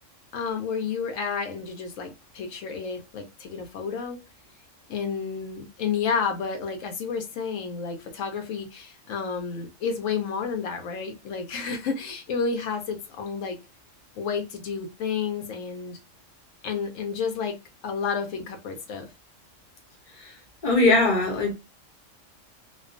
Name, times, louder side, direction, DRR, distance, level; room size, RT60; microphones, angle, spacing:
voice 1, 0.3-4.2 4.9-13.6 14.2-16.0 16.6-17.6 17.8-19.1, left 6 dB, 85° left, 1.0 m, -30 dB
voice 2, 20.6-21.5, left 2 dB, 40° left, 0.9 m, -21 dB
2.4 x 2.3 x 2.4 m
omnidirectional pair, 1.3 m